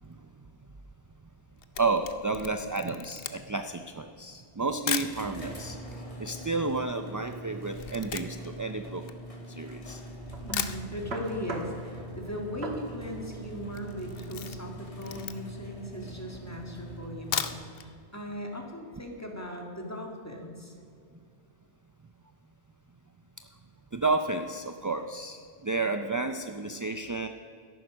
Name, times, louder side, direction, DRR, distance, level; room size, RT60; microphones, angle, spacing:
Camera, 1.3-5.2 5.9-6.0 6.2-9.8 10.2-10.3 10.5-11.4 11.7-11.8 12.1-12.2 12.3-12.8 13.1-13.3 13.7-15.7 16.2-16.3 17.1-17.9 18.3-18.4 18.7-18.8, left 8 dB, 70° left, 0.9 m, -37 dB
voice 1, 1.8-5.8 6.2-9.1 9.5-10.0 17.8-17.9 23.9-27.3, right 3 dB, 30° right, 7 dB, 0.4 m, -31 dB
sound 1, 5.1-17.9, equal, 35° left, 2.2 m, -44 dB
sound 2, 10.2-17.2, right 3 dB, 85° right, 1.8 m, -44 dB
voice 2, 10.4-20.7, equal, 15° left, 1 dB, 2.1 m, -38 dB
13.5 x 11.0 x 6.3 m, 2.4 s
omnidirectional pair, 1.0 m